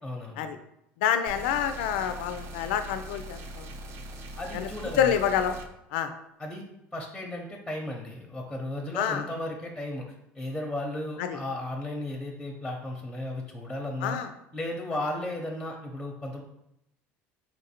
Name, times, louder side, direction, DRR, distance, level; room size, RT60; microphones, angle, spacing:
voice 1, 0.0-0.5 4.4-5.2 6.4-6.6 6.9-14.2 14.5-16.4, left 1 dB, 5° left, 1 dB, 0.7 m, -35 dB
voice 2, 1.0-3.7 4.5-4.7 5.0-5.6 5.9-6.1 9.0-9.3 11.2-11.4 14.0-14.3, left 9 dB, 90° left, 9 dB, 0.4 m, -27 dB
sound 1, 1.3-5.7, right 1 dB, 55° right, 0.5 m, -41 dB
4.5 x 2.5 x 4.2 m, 0.81 s
supercardioid pair, 115°, 6 cm